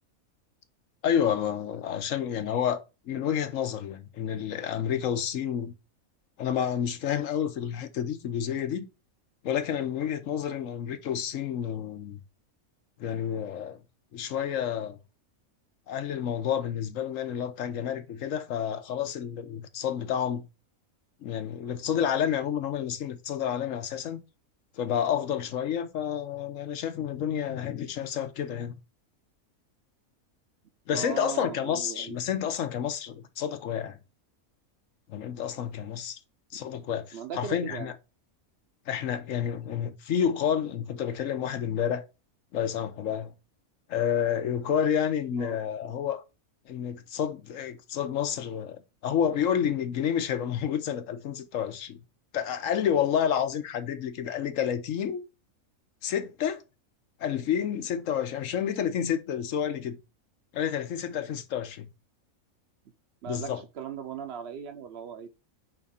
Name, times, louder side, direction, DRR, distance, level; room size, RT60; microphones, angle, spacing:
voice 1, 1.0-5.7 6.4-8.9 9.4-12.2 13.0-13.8 14.1-15.0 15.9-20.5 21.2-24.2 24.8-28.7 30.9-34.0 35.1-36.2 36.5-37.9 38.9-42.0 42.5-43.3 43.9-46.2 46.7-52.0 52.3-55.2 56.0-56.6 57.2-60.0 60.5-61.9 63.3-63.6, left 9 dB, 70° left, 1.1 m, -29 dB
voice 2, 30.9-32.2 36.5-36.6 37.1-37.9 45.3-45.6 63.2-65.3, right 8 dB, 60° right, 0.8 m, -38 dB
5.1 x 3.7 x 5.5 m
omnidirectional pair, 1.5 m